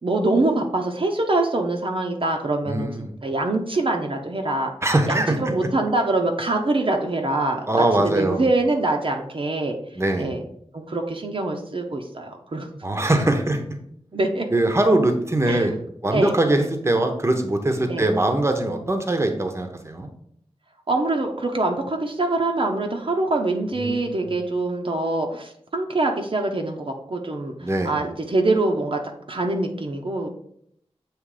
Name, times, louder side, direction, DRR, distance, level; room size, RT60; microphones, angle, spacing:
voice 1, 0.0-4.7 5.1-9.8 10.2-10.4 10.7-12.7 14.1-14.5 15.5-15.7 16.0-16.4 17.9-18.1 20.9-29.0 29.3-30.3, right 2 dB, 55° right, 2 dB, 0.8 m, -24 dB
voice 2, 2.7-3.1 4.8-5.4 7.7-8.4 10.0-10.3 12.8-13.6 14.5-15.7 16.0-20.1 23.7-24.4 27.6-27.9, right 1 dB, 25° right, 5 dB, 0.9 m, -22 dB
7.4 x 3.1 x 4.9 m, 0.69 s
wide cardioid pair, 85°, 11 cm